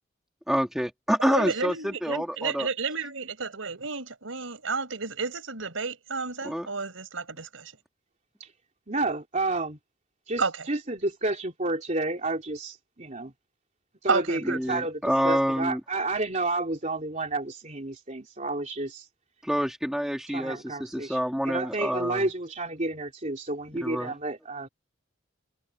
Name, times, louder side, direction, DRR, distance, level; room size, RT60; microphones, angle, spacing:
voice 1, 0.5-2.7 6.4-6.7 14.5-15.8 19.4-22.3 23.8-24.1, equal, ahead, 1.8 m, -27 dB
voice 2, 1.2-7.7 10.4-10.7 14.1-14.6, right 4 dB, 85° right, 4.5 m, -31 dB
voice 3, 8.9-9.8 10.3-13.3 14.0-19.1 20.3-21.2 21.4-24.7, right 2 dB, 40° right, 3.1 m, -30 dB
head